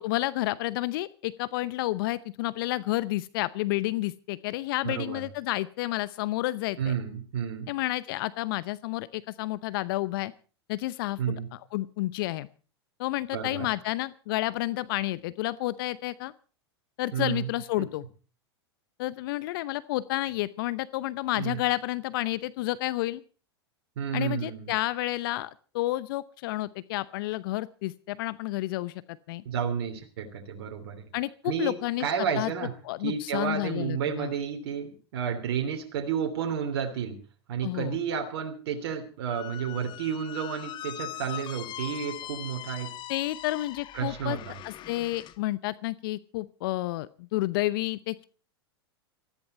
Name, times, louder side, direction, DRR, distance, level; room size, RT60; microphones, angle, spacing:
voice 1, 0.0-6.9 7.7-10.3 10.7-11.2 11.5-12.5 13.0-16.3 17.0-18.0 19.0-23.2 24.1-29.4 31.1-32.5 32.8-34.3 37.6-38.0 43.1-44.4 44.6-48.2, left 17 dB, 55° left, 18 dB, 0.8 m, -30 dB
voice 2, 4.8-5.2 6.8-7.7 11.2-11.5 13.3-13.7 17.1-17.5 17.8-17.9 21.3-21.6 24.0-24.7 29.4-31.0 31.4-31.7 32.0-32.7 33.0-37.2 37.5-42.9 43.9-44.6, right 7 dB, 60° right, 4 dB, 3.0 m, -31 dB
Squeak, 39.3-45.4, left 13 dB, 35° left, 1.2 m, -41 dB
19.5 x 14.5 x 4.3 m, 0.37 s
hypercardioid pair, 95°, 14 cm